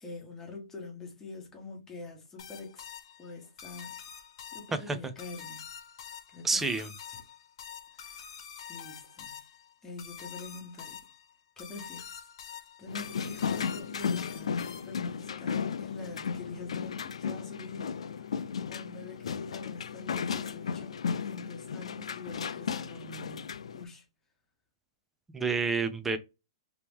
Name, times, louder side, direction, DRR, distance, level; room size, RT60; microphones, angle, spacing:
voice 1, 0.0-2.9 3.2-4.0 4.5-5.7 6.3-6.6 7.9-8.3 8.7-9.4 9.8-11.1 11.6-12.2 12.8-17.9 18.1-24.0, left 3 dB, 10° left, 1.2 m, -45 dB
sound 1, 2.4-15.1, left 8 dB, 55° left, 1.1 m, -46 dB
voice 2, 6.4-6.9 25.3-26.2, right 4 dB, 10° right, 0.4 m, -28 dB
sound 2, 12.9-23.8, left 6 dB, 90° left, 0.4 m, -35 dB
3.0 x 2.9 x 3.5 m
hypercardioid pair, 150°, 3 cm